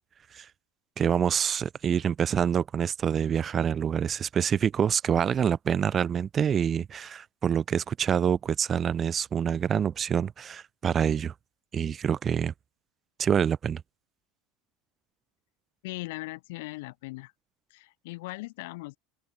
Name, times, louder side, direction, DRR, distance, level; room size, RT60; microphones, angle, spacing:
voice 1, 1.0-11.3 11.7-12.5 13.2-13.8, right 8 dB, 25° right, 2.5 m, -26 dB
voice 2, 15.8-17.3 17.7-19.0, left 23 dB, 70° left, 7.6 m, -39 dB
open air
supercardioid pair, 150°, 0 cm